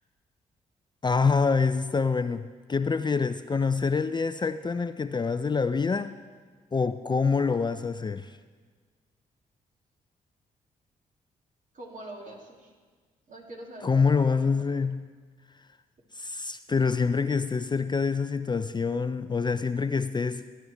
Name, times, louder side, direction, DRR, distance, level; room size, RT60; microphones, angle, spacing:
voice 1, 1.0-6.1 6.7-8.4 13.8-15.1 16.2-20.4, left 5 dB, 25° left, 12 dB, 0.4 m, -26 dB
voice 2, 11.7-12.7 13.3-14.6, right 1 dB, 50° right, -2 dB, 2.7 m, -44 dB
15.5 x 8.7 x 3.4 m, 1.5 s
supercardioid pair, 45°, 17 cm